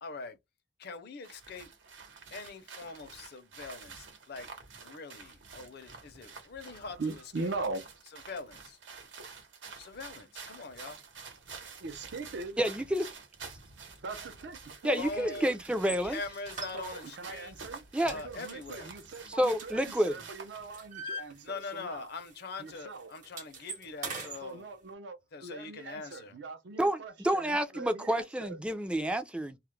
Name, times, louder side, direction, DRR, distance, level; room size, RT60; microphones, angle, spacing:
voice 1, 0.0-0.4 0.8-1.7 2.3-4.5 4.8-7.5 8.1-8.8 9.8-11.0 15.0-15.6 16.0-18.9 21.4-24.7 25.3-26.4, left 4 dB, 60° left, 0.6 m, -43 dB
sound 1, 1.2-20.7, right 5 dB, 85° right, 0.9 m, -49 dB
voice 2, 7.0-7.8 11.8-12.6 14.0-15.5 16.7-22.1 22.6-23.1 24.4-28.6, right 3 dB, 65° right, 0.5 m, -41 dB
voice 3, 12.6-13.0 14.8-16.2 17.9-18.1 19.3-20.2 26.8-29.6, right 1 dB, 5° right, 0.4 m, -29 dB
sound 2, 15.8-16.0 16.5-17.2 17.6-17.8 18.1-20.1 20.5-21.9 22.2-22.4 22.7-24.4, right 2 dB, 45° right, 0.9 m, -42 dB
2.3 x 2.1 x 3.0 m
head